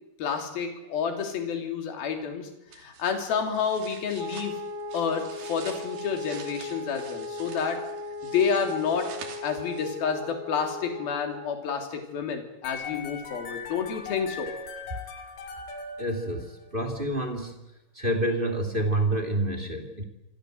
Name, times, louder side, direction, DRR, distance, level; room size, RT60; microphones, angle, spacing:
voice 1, 0.2-2.5 2.8-4.5 4.9-7.8 8.2-9.1 9.4-14.5, left 6 dB, 50° left, 4 dB, 4.7 m, -29 dB
sound 1, 2.7-10.1, right 6 dB, 55° right, 4.4 m, -47 dB
Wind instrument woodwind instrument, 4.1-11.6, left 2 dB, 10° left, 2.4 m, -38 dB
sound 2, 12.6-16.8, left 5 dB, 75° left, 5.1 m, -40 dB
voice 2, 16.0-17.6 17.9-20.0, right 1 dB, 40° right, 6 dB, 0.7 m, -28 dB
27.0 x 24.5 x 7.9 m, 0.90 s
omnidirectional pair, 5.8 m